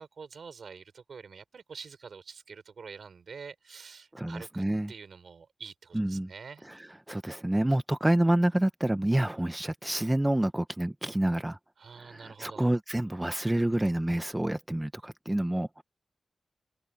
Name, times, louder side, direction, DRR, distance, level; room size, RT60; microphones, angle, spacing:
voice 1, 0.0-6.6 11.8-12.7, right 5 dB, 65° right, 3.5 m, -46 dB
voice 2, 4.1-4.9 5.9-6.3 6.7-6.8 7.1-11.6 12.0-15.8, right 1 dB, 10° right, 0.6 m, -28 dB
wide cardioid pair, 175°, 0 cm